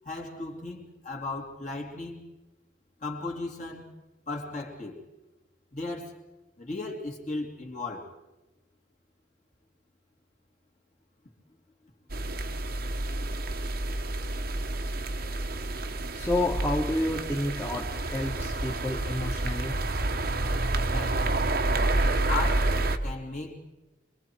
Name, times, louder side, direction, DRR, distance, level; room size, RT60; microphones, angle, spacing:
voice 1, 0.0-2.2 3.0-3.9 4.3-5.0 5.7-6.2 6.6-8.1 20.8-21.2 22.3-23.6, left 3 dB, 40° left, 0 dB, 3.2 m, -36 dB
sound 1, 12.1-23.0, right 2 dB, 50° right, 1.2 m, -29 dB
voice 2, 16.1-19.7, left 1 dB, 15° left, -4 dB, 1.8 m, -30 dB
28.0 x 22.5 x 4.7 m, 1.0 s
head